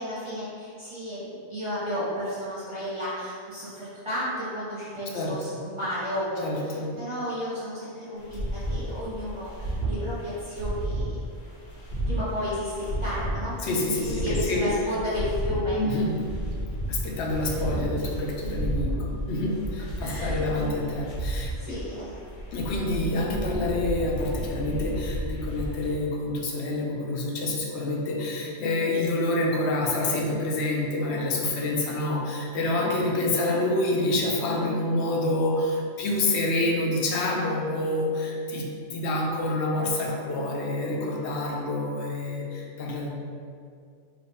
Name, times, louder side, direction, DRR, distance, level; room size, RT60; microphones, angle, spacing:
voice 1, 0.0-11.2 12.1-13.6 13.9-15.8 17.4-17.6 20.0-20.4 21.6-22.2, left 1 dB, 25° right, -11 dB, 0.9 m, -32 dB
voice 2, 6.4-6.9 13.6-14.7 15.7-16.3 16.8-21.8 22.5-43.1, left 2 dB, 70° left, -1 dB, 0.8 m, -27 dB
sound 1, 8.2-26.0, right 1 dB, 90° left, 1.2 m, -32 dB
2.9 x 2.4 x 4.2 m, 2.3 s
omnidirectional pair, 1.3 m